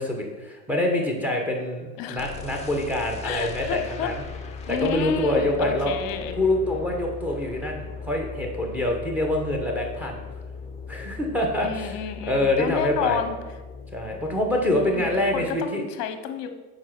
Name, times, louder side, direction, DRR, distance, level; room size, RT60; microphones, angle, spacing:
voice 1, 0.0-4.2 4.7-5.9 6.4-10.2 10.9-11.9 12.2-13.2 13.9-15.8, left 1 dB, 5° right, 1 dB, 1.1 m, -25 dB
voice 2, 2.0-2.3 3.2-4.1 4.7-6.3 11.6-13.4 14.7-16.5, left 8 dB, 45° left, 8 dB, 0.9 m, -31 dB
sound 1, 2.2-15.5, left 5 dB, 15° left, 0.6 m, -39 dB
4.6 x 4.5 x 5.9 m, 1.2 s
hypercardioid pair, 110°, 48 cm